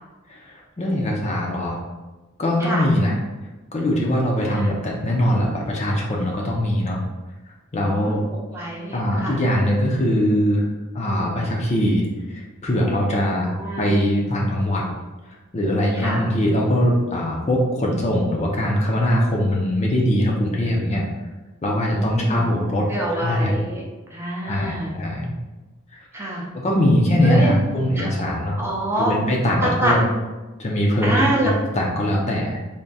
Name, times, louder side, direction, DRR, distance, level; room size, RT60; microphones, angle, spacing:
voice 1, 0.3-1.8 2.4-3.2 3.7-7.0 7.7-8.3 8.9-10.6 10.9-13.5 13.8-14.8 15.5-21.0 21.6-22.9 23.1-23.6 24.4-25.3 25.9-26.1 26.5-28.6 29.0-30.0 30.6-31.5 31.7-32.6, equal, 30° left, -1 dB, 0.5 m, -21 dB
voice 2, 4.4-4.8 7.8-8.2 8.5-9.4 13.3-13.9 16.0-16.3 21.9-22.4 22.9-23.8 24.1-24.9 26.1-26.4 27.2-27.6 28.0-28.1 28.6-29.1 29.6-29.9 31.0-31.5, right 1 dB, 10° right, -3 dB, 0.6 m, -26 dB
3.5 x 2.1 x 4.0 m, 1.2 s
head